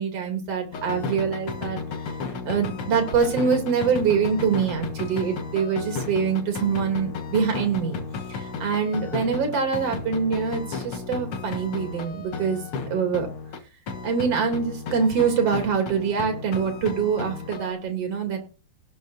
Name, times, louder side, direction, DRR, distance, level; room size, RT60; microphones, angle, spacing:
voice 1, 0.0-1.8 2.5-8.0 8.3-12.6 12.9-13.3 14.0-18.4, right 6 dB, 45° right, 4 dB, 3.5 m, -24 dB
sound 1, 0.7-13.6 13.9-17.7, left 4 dB, 50° left, 1.8 m, -34 dB
18.5 x 7.0 x 2.6 m, 0.34 s
omnidirectional pair, 4.0 m